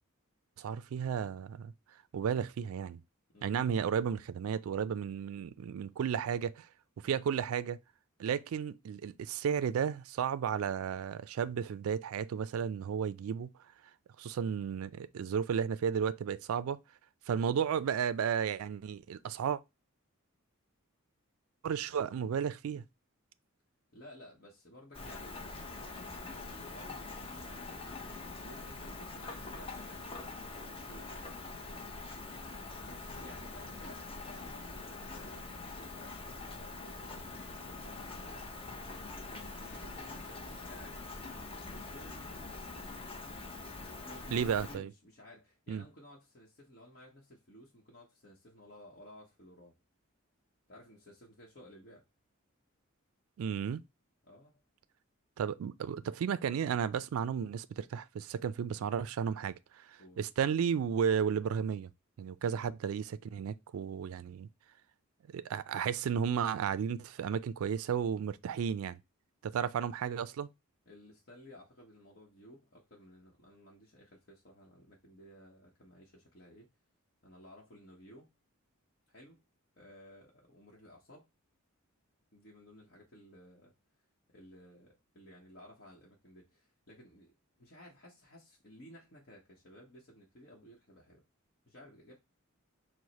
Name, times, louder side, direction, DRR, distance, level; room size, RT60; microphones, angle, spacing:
voice 1, 0.6-1.7 2.1-3.0 3.4-6.7 7.0-7.8 8.2-13.5 14.2-16.8 17.3-19.6 21.6-22.8 44.3-44.9 45.7-45.8 53.4-53.8 55.4-59.8 60.2-61.9 62.2-64.5 65.3-69.0 69.4-70.5, right 7 dB, 75° right, 0.3 m, -33 dB
voice 2, 3.3-3.9 23.9-27.9 28.4-31.4 32.8-38.5 39.2-41.0 41.3-42.9 43.8-49.8 50.7-52.0 54.2-54.6 60.0-60.2 70.9-76.7 77.2-78.3 79.1-79.4 79.8-81.3 82.3-83.7 84.3-91.2 91.7-92.1, left 1 dB, 45° left, 0.9 m, -55 dB
Rain, 24.9-44.8, left 3 dB, 25° left, 0.7 m, -44 dB
4.7 x 2.1 x 3.9 m
head